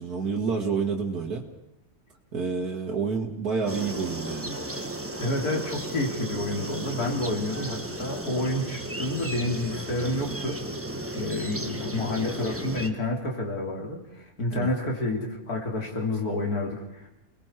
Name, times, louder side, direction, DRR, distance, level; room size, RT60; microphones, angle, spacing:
voice 1, 0.0-1.5 2.3-4.6 14.5-14.7, right 5 dB, 90° right, -1 dB, 2.2 m, -29 dB
sound 1, 3.7-12.9, right 1 dB, 10° right, 1.2 m, -35 dB
voice 2, 5.2-10.6 10.9-17.1, left 1 dB, 85° left, 0 dB, 3.6 m, -29 dB
29.5 x 19.5 x 4.5 m, 0.85 s
omnidirectional pair, 1.6 m